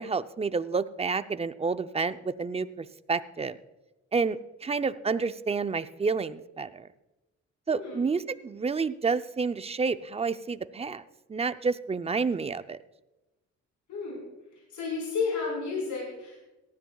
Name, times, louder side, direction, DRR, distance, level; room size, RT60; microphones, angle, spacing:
voice 1, 0.0-3.6 4.1-6.9 7.7-11.0 11.3-12.8, right 4 dB, 20° right, 12 dB, 0.5 m, -29 dB
voice 2, 7.7-8.0 13.9-14.2 14.5-16.4, left 4 dB, 75° left, -3 dB, 4.7 m, -32 dB
18.0 x 13.5 x 2.3 m, 1.0 s
cardioid pair, 90°, 30 cm